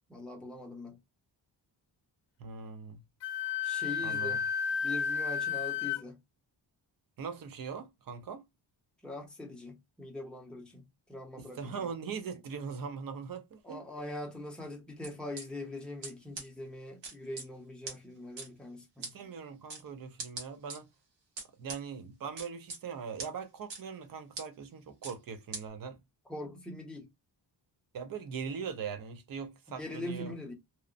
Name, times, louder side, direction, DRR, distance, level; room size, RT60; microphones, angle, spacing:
voice 1, 0.1-1.0 3.6-4.4 4.8-6.2 9.0-11.9 13.6-19.1 26.3-27.1 29.7-30.5, left 2 dB, ahead, 0.6 m, -42 dB
voice 2, 2.4-3.0 4.0-4.4 7.2-8.4 11.4-13.8 19.0-20.9 21.6-26.0 27.9-30.3, right 6 dB, 55° right, 0.6 m, -41 dB
Wind instrument woodwind instrument, 3.2-6.0, left 7 dB, 80° left, 0.5 m, -32 dB
sound 1, 15.0-15.4 16.0-16.1 16.4-16.5 17.0-17.5 17.9-18.0 18.4-18.5 19.0-19.1 19.7-19.8 20.2-20.8 21.4-21.8 22.4-22.8 23.2-23.3 23.7-23.8 24.4-24.5 25.0-25.1 25.5-25.6, right 3 dB, 80° right, 1.2 m, -40 dB
2.9 x 2.0 x 2.4 m
wide cardioid pair, 170°, 42 cm